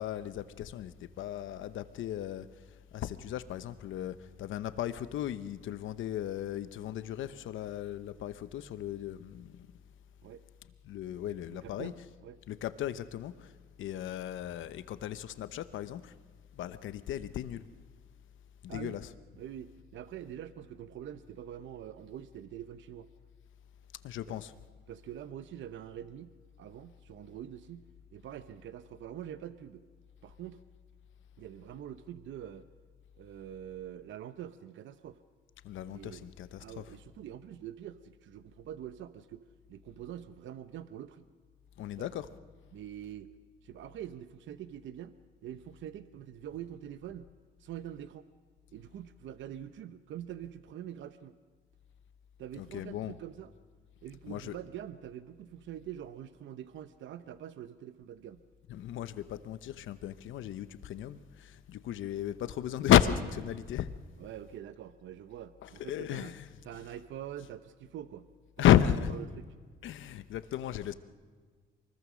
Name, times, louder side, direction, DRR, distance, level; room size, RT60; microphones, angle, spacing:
voice 1, 0.0-9.7 10.8-12.1 12.5-13.5 13.8-16.2 16.5-17.6 18.6-19.1 24.0-24.5 35.6-37.0 41.8-42.3 52.5-53.2 54.3-54.6 58.7-63.9 65.6-67.0 67.4-67.5 68.6-69.2 69.8-70.9, left 11 dB, 80° left, 1.0 m, -33 dB
voice 2, 11.5-11.9 12.2-12.4 18.7-19.0 19.4-23.1 24.3-24.4 24.9-26.3 26.6-27.8 28.1-29.8 30.2-30.6 31.4-32.7 33.2-35.2 35.9-36.3 36.6-39.4 39.7-41.2 42.0-42.2 42.7-43.3 43.6-45.1 45.4-47.3 47.6-48.3 48.7-51.3 52.4-53.5 54.0-58.4 64.2-66.3 66.6-68.3 68.6-68.7 69.1-69.5, right 10 dB, 75° right, 0.8 m, -45 dB
24.0 x 20.5 x 6.3 m
cardioid pair, 90°, 20 cm